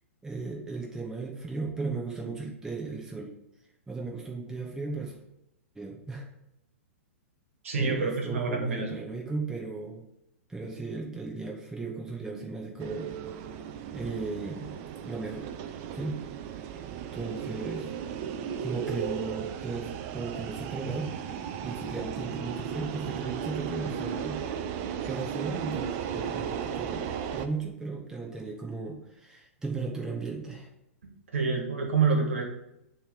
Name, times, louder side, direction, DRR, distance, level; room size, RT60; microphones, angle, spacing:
voice 1, 0.2-3.3 3.9-5.2 5.7-6.3 7.7-10.0 10.5-13.1 13.9-15.5 15.9-16.2 16.7-16.8 17.1-17.9 18.6-24.4 25.1-30.7, right 3 dB, 5° right, -1 dB, 1.0 m, -36 dB
voice 2, 7.6-9.0 31.3-32.4, right 4 dB, 65° right, 2 dB, 1.7 m, -27 dB
sound 1, 12.8-27.5, right 8 dB, 35° right, 0.5 m, -35 dB
10.0 x 3.4 x 3.7 m, 0.85 s
figure-of-eight pair, 110°, 8 cm